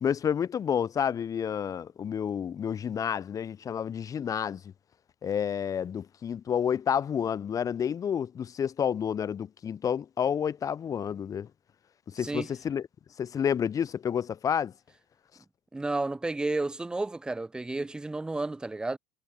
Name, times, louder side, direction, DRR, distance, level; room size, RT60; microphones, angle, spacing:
voice 1, 0.0-4.6 5.2-11.5 12.1-12.8 13.2-14.7, left 8 dB, 30° left, 0.7 m, -29 dB
voice 2, 12.2-12.5 15.7-19.0, right 2 dB, 5° right, 0.3 m, -31 dB
figure-of-eight pair, 70°, 12 cm